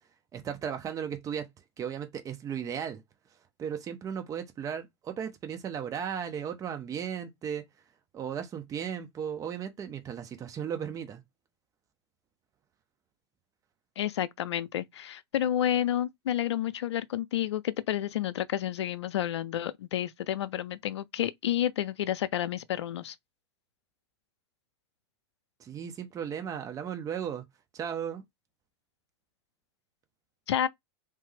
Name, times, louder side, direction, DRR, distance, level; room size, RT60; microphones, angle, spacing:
voice 1, 0.3-1.5 1.8-3.0 3.6-7.6 8.1-11.2 25.6-27.4 27.7-28.2, right 8 dB, 25° right, 0.6 m, -35 dB
voice 2, 14.0-23.1 30.5-30.7, left 11 dB, 75° left, 0.4 m, -30 dB
3.2 x 2.1 x 3.1 m
hypercardioid pair, 105°, 14 cm